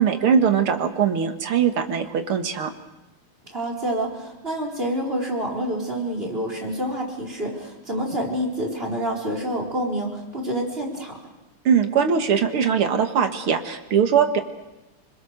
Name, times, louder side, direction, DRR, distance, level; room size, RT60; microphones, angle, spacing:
voice 1, 0.0-2.7 11.7-14.4, right 7 dB, 75° right, 6 dB, 2.6 m, -21 dB
voice 2, 3.5-11.2, right 1 dB, 25° right, 1 dB, 4.6 m, -27 dB
29.5 x 21.5 x 6.6 m, 1.0 s
omnidirectional pair, 2.4 m